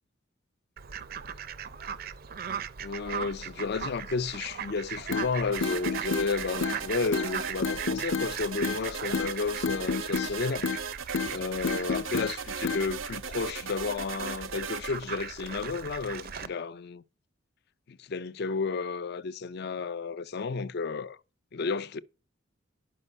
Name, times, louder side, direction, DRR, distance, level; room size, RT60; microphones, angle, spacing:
Fowl, 0.8-16.5, right 7 dB, 50° right, 0.5 m, -39 dB
voice 1, 2.8-10.7 11.3-17.0 17.9-21.2 21.5-22.0, left 4 dB, 55° left, 0.4 m, -32 dB
sound 1, 5.1-5.3 5.6-6.3 6.6-6.8 7.1-7.3 7.6-8.3 8.6-8.8 9.1-9.3 9.6-10.3 10.6-10.8 11.1-11.3 11.6-12.3 12.6-12.8, left 5 dB, 75° left, 0.8 m, -29 dB
sound 2, 5.5-14.9, right 6 dB, 80° right, 0.8 m, -38 dB
11.0 x 5.2 x 5.5 m
head